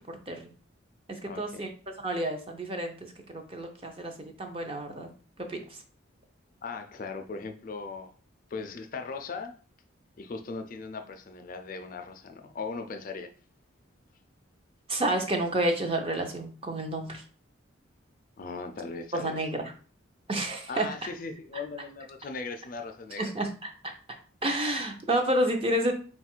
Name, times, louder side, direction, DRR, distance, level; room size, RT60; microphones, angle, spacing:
voice 1, 0.1-0.5 1.1-1.7 2.0-5.1 5.4-5.8 14.9-17.2 19.1-19.7 20.3-20.9 23.2-23.9 24.4-25.9, right 1 dB, 25° right, 0.6 m, -30 dB
voice 2, 1.2-1.7 6.6-8.1 8.5-9.6 10.2-13.3 18.4-19.4 20.7-23.3, left 4 dB, 40° left, 0.4 m, -38 dB
3.9 x 2.4 x 4.3 m
head